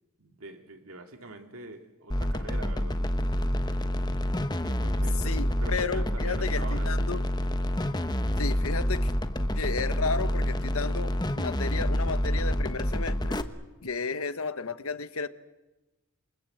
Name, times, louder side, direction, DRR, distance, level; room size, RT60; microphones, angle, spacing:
voice 1, 0.2-3.1 4.6-7.0, right 2 dB, 70° right, 2.5 m, -44 dB
sound 1, 2.1-13.4, equal, 20° left, 1.2 m, -28 dB
voice 2, 5.2-7.2 8.4-9.1 9.5-13.4 13.8-15.3, left 4 dB, 75° left, 1.3 m, -33 dB
28.0 x 24.5 x 8.0 m
head